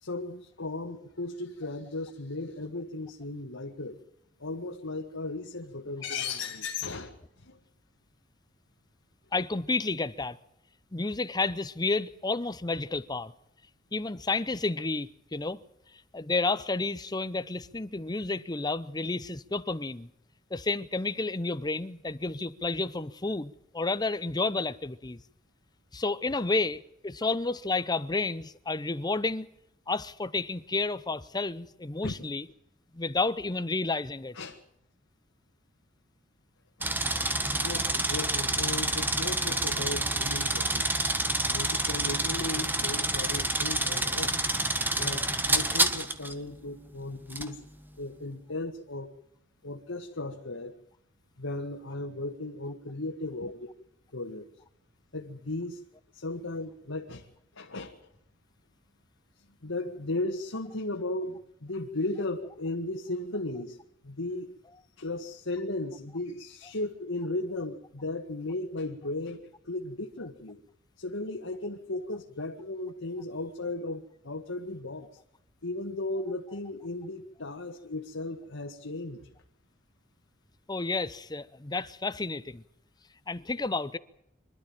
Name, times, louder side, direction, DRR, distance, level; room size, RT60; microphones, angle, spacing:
voice 1, 0.0-4.0 4.4-7.2 7.4-7.6 26.3-26.4 32.0-32.1 34.4-34.6 36.8-37.0 37.6-40.9 41.5-44.3 45.0-47.6 48.0-49.1 49.6-50.7 51.4-53.7 54.1-54.5 55.1-55.8 56.1-57.3 57.6-58.0 59.6-63.8 64.0-64.5 65.0-70.6 71.0-75.1 75.6-79.2, left 2 dB, 80° left, 1.8 m, -36 dB
voice 2, 9.3-10.4 10.9-13.3 13.9-15.6 16.1-20.1 20.5-25.2 25.9-29.5 29.9-32.5 32.9-34.4 80.7-82.6 83.3-84.0, left 3 dB, 20° left, 0.7 m, -31 dB
sound 1, 36.8-46.3 47.3-47.5, right 2 dB, 10° right, 1.5 m, -28 dB
25.5 x 12.5 x 9.0 m
head